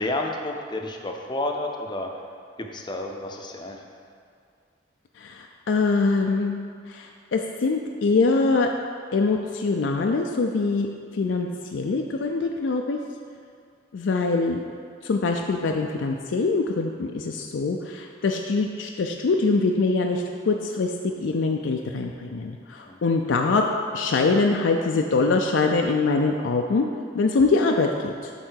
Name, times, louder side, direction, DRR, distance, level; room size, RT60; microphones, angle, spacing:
voice 1, 0.0-2.1 2.6-3.8 22.9-23.0, left 2 dB, 25° left, 2 dB, 0.6 m, -30 dB
voice 2, 5.2-6.6 6.9-8.7 9.1-10.9 11.1-13.0 13.9-14.6 15.0-20.9 21.2-23.6 23.9-26.9 27.1-28.3, left 3 dB, 75° left, 2 dB, 0.4 m, -23 dB
8.0 x 3.8 x 6.3 m, 2.3 s
head